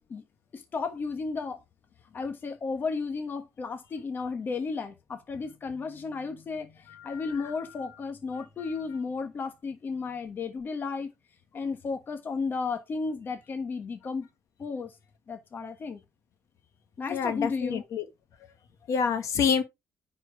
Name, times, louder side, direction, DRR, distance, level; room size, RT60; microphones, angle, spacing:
voice 1, 0.5-1.6 2.1-11.1 11.5-14.3 14.6-14.9 15.3-16.0 17.0-17.8, left 4 dB, 30° left, 1.3 m, -33 dB
voice 2, 17.1-18.0 18.9-19.6, left 6 dB, 55° left, 1.5 m, -26 dB
9.9 x 4.4 x 4.7 m
cardioid pair, 165°, 6 cm